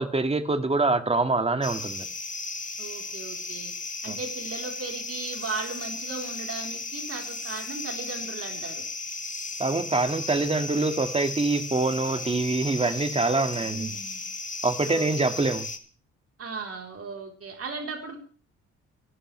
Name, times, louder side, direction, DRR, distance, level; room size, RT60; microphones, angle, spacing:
voice 1, 0.0-2.1 4.1-4.2 9.6-13.9 14.6-15.7, right 3 dB, 20° right, 8 dB, 1.9 m, -25 dB
sound 1, 1.6-15.8, left 3 dB, 25° left, 2.1 m, -35 dB
voice 2, 2.8-3.7 4.0-8.8 13.6-14.2 14.8-15.3 16.4-18.2, right 4 dB, 50° right, 2 dB, 3.7 m, -37 dB
28.0 x 12.5 x 3.3 m, 0.41 s
cardioid pair, 90°, 30 cm